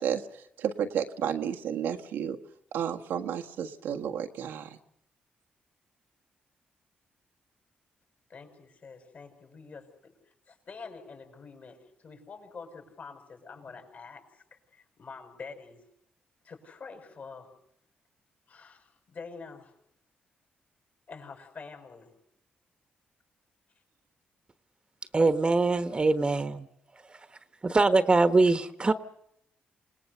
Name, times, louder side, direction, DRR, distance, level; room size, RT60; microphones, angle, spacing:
voice 1, 0.0-2.4 2.7-4.8, right 8 dB, 90° right, 4 dB, 1.6 m, -32 dB
voice 2, 8.3-15.8 16.4-17.5 18.5-19.7 21.1-22.1, left 4 dB, 55° left, 4 dB, 6.6 m, -46 dB
voice 3, 25.1-26.7 27.1-27.3 27.6-28.9, right 3 dB, 30° right, 11 dB, 1.3 m, -23 dB
27.5 x 19.0 x 6.8 m, 0.75 s
cardioid pair, 75°, 3 cm